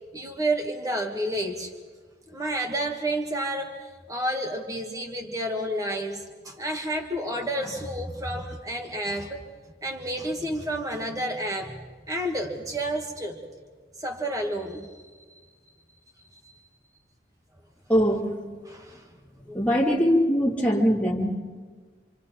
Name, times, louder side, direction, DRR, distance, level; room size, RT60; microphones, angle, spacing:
voice 1, 0.1-1.7 2.3-9.4 9.8-11.8 12.1-13.4 14.0-14.9 18.7-19.0 19.5-19.6, right 1 dB, 20° right, 2 dB, 1.6 m, -30 dB
voice 2, 17.9-18.2 19.5-21.3, equal, 10° left, -4 dB, 3.0 m, -21 dB
27.5 x 26.5 x 4.2 m, 1.5 s
head